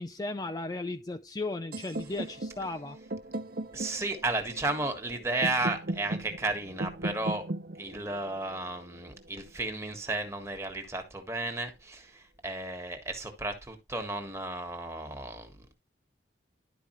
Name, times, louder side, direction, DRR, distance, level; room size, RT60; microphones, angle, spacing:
voice 1, 0.0-3.0, left 2 dB, 20° left, 0.4 m, -35 dB
sound 1, 1.7-9.6, right 1 dB, 50° right, 0.7 m, -38 dB
voice 2, 3.7-7.5 7.7-15.7, right 2 dB, 15° right, 1.5 m, -33 dB
11.5 x 4.9 x 3.1 m
head